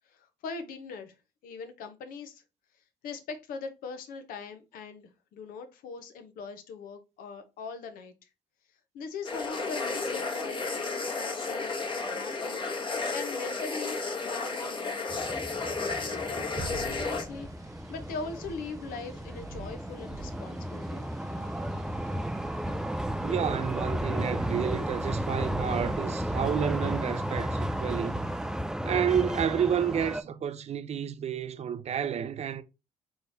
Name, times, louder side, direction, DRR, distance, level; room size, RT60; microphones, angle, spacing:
voice 1, 0.1-1.1 1.4-2.4 3.0-8.3 8.9-12.6 13.1-15.2 15.8-21.1, left 4 dB, 70° left, 0.8 m, -41 dB
sound 1, 9.2-17.2, left 3 dB, 35° left, 1.2 m, -33 dB
sound 2, 15.1-30.2, right 1 dB, 5° right, 0.4 m, -33 dB
sound 3, 16.6-28.6, right 3 dB, 20° right, 1.1 m, -47 dB
voice 2, 23.2-28.2 28.8-32.6, right 8 dB, 45° right, 0.6 m, -30 dB
4.8 x 3.2 x 2.7 m
hypercardioid pair, 60°, 15 cm